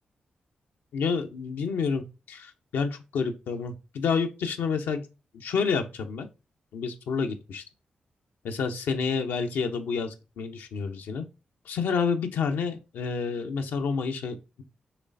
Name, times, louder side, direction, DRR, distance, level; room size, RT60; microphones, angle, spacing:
voice 1, 0.9-5.1 5.3-6.3 6.7-7.6 8.4-11.3 11.7-14.6, left 5 dB, 80° left, 0.6 m, -29 dB
5.9 x 3.2 x 2.6 m
supercardioid pair, 40°, 3 cm